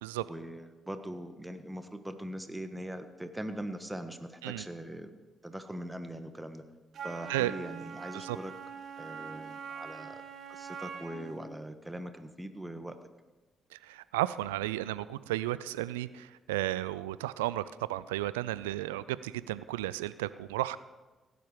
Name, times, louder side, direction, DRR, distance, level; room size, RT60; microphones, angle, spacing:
voice 1, 0.3-6.6 7.0-8.5 9.0-10.2 10.5-13.0, right 1 dB, 10° right, 8 dB, 1.5 m, -41 dB
Wind instrument woodwind instrument, 6.9-11.5, right 6 dB, 60° right, 1.1 m, -43 dB
voice 2, 13.7-20.8, right 16 dB, 85° right, 17 dB, 0.3 m, -33 dB
16.5 x 9.4 x 5.1 m, 1.2 s
hypercardioid pair, 40°, 0 cm